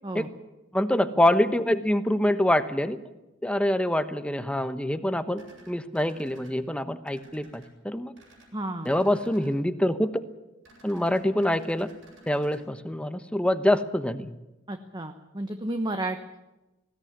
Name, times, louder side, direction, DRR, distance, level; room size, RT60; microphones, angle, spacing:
voice 1, 0.7-3.0 3.4-8.1 8.8-10.2 10.8-11.9 12.3-14.3, left 1 dB, 5° left, 10 dB, 1.0 m, -25 dB
sound 1, 5.3-6.5 7.0-7.7 8.1-8.5 8.8-9.5 10.6-12.6, right 2 dB, 75° right, 8.0 m, -54 dB
voice 2, 8.5-8.9 14.7-16.4, right 1 dB, 20° right, 6 dB, 1.2 m, -32 dB
20.0 x 16.5 x 9.6 m, 1.0 s
head